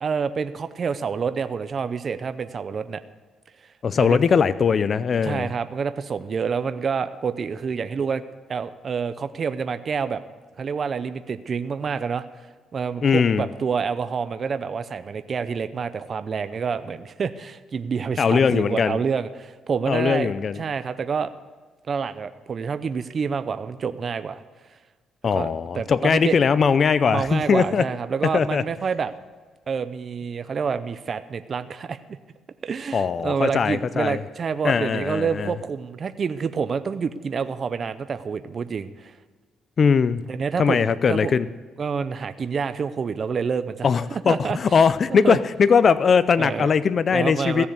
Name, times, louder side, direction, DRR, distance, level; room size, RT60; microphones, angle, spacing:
voice 1, 0.0-3.0 4.0-4.2 5.2-8.2 8.5-10.2 10.6-12.2 12.7-21.3 21.9-24.4 25.3-25.5 25.7-26.4 27.1-29.1 29.7-32.2 32.6-39.1 40.3-41.3 41.8-44.6 45.1-45.4 46.4-46.7 47.1-47.7, right 6 dB, 45° right, 11 dB, 0.6 m, -28 dB
voice 2, 3.8-5.5 13.0-13.5 18.2-19.0 19.9-20.6 25.2-27.8 28.3-28.6 32.9-34.2 34.6-35.5 39.8-40.2 40.6-41.5 43.8-47.7, left 6 dB, 45° left, 15 dB, 0.5 m, -20 dB
15.5 x 7.1 x 8.1 m, 1.4 s
cardioid pair, 90°, 0 cm